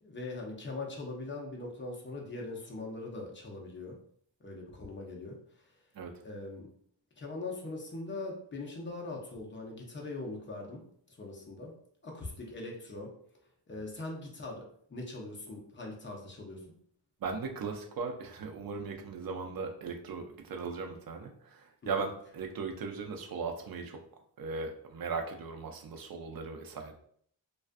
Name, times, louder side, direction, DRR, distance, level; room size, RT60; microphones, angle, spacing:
voice 1, 0.0-4.0 4.4-5.4 6.2-6.7 7.2-10.8 11.1-11.7 12.0-13.1 13.7-16.6 21.8-22.1, left 2 dB, 25° left, -1 dB, 0.5 m, -41 dB
voice 2, 17.2-24.0 24.4-26.9, right 4 dB, 55° right, 3 dB, 0.5 m, -38 dB
2.3 x 2.3 x 2.4 m, 0.63 s
wide cardioid pair, 125°, 44 cm